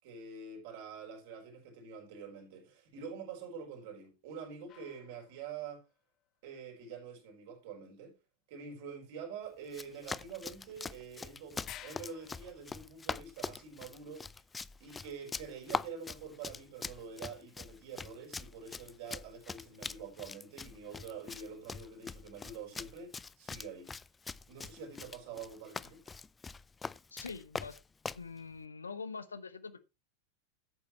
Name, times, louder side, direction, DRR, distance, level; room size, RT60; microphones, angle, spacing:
voice 1, 0.0-5.8 6.4-8.1 8.5-14.3 14.8-23.9 24.5-26.0, right 6 dB, 50° right, 4.3 m, -46 dB
sound 1, 4.7-6.0 10.6-10.7 11.0-11.1 11.6-12.6, left 12 dB, 35° left, 1.0 m, -52 dB
Run, 9.7-28.3, left 4 dB, 15° left, 0.4 m, -43 dB
voice 2, 27.1-27.8 28.1-29.8, left 5 dB, 75° left, 0.9 m, -44 dB
12.5 x 8.5 x 3.1 m
figure-of-eight pair, 90°, 0 cm